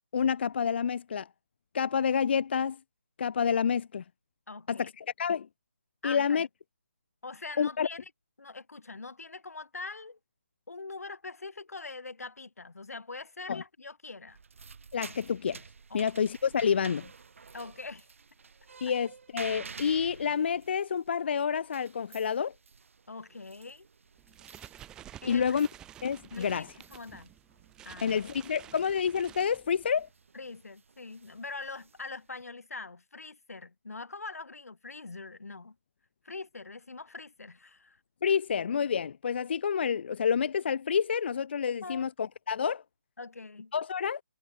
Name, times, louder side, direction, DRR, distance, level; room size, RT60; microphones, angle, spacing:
voice 1, 0.1-1.3 1.7-2.8 3.2-4.0 4.7-5.5 6.0-6.5 7.6-7.9 13.5-13.6 14.9-15.6 15.9-17.1 18.8-22.5 25.3-25.7 26.0-26.7 28.0-30.1 38.2-42.8 43.7-44.2, left 7 dB, 45° left, 0.5 m, -28 dB
voice 2, 4.5-4.9 6.0-6.5 7.2-8.1 8.4-10.2 10.7-14.4 15.9-16.0 17.5-18.1 23.1-23.9 25.2-25.4 26.3-27.3 27.8-28.3 28.6-28.7 30.3-35.8 36.2-38.0 41.8-42.1 43.2-43.7, left 3 dB, 80° left, 3.0 m, -43 dB
sound 1, 14.3-32.4, right 5 dB, 60° right, 4.7 m, -51 dB
sound 2, 24.2-30.1, right 11 dB, 10° right, 0.6 m, -51 dB
figure-of-eight pair, 155°, 8 cm